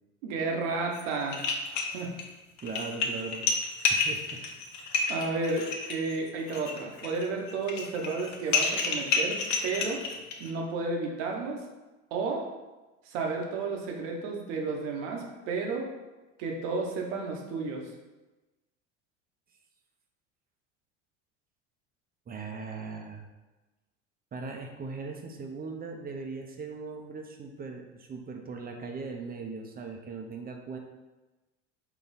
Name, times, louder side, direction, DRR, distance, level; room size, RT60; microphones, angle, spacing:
voice 1, 0.2-1.4 1.9-2.1 5.1-10.0 10.4-11.6 12.1-12.5 13.1-15.9 16.4-17.9, right 3 dB, 70° right, 1 dB, 0.9 m, -32 dB
sound 1, 0.9-1.0 1.3-2.2 2.6-10.5, left 4 dB, 50° left, 0.7 m, -30 dB
voice 2, 2.6-3.5 3.9-4.6 22.3-23.2 24.3-30.8, right 4 dB, 25° right, 3 dB, 0.6 m, -39 dB
4.0 x 2.3 x 4.0 m, 1.1 s
hypercardioid pair, 75°, 37 cm